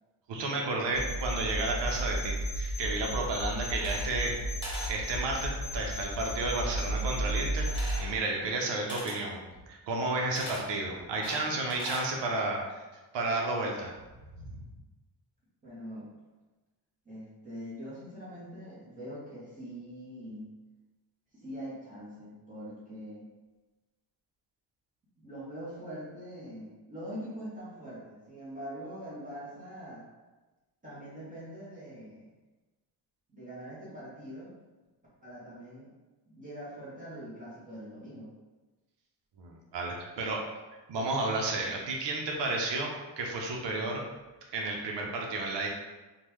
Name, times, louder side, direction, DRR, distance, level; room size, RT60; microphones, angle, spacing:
voice 1, 0.3-4.4 4.9-7.7 8.0-12.8 13.1-13.9 14.4-14.6 39.4-40.4 40.9-42.9 43.2-44.0 44.5-45.7, right 2 dB, 85° right, 0 dB, 0.7 m, -32 dB
sound 1, 0.9-8.0, right 1 dB, 35° left, 0.5 m, -33 dB
sound 2, 3.7-4.4 4.6-5.0 7.7-8.1 8.9-9.2 10.4-10.7 11.2-12.1, equal, 10° left, 1.0 m, -40 dB
voice 2, 15.6-16.1 17.1-20.5 21.3-23.2 25.2-30.0 30.8-32.3 33.3-34.6 35.2-35.9 36.3-38.3, equal, 20° right, -9 dB, 0.8 m, -43 dB
3.6 x 2.2 x 3.0 m, 1.2 s
wide cardioid pair, 165°, 41 cm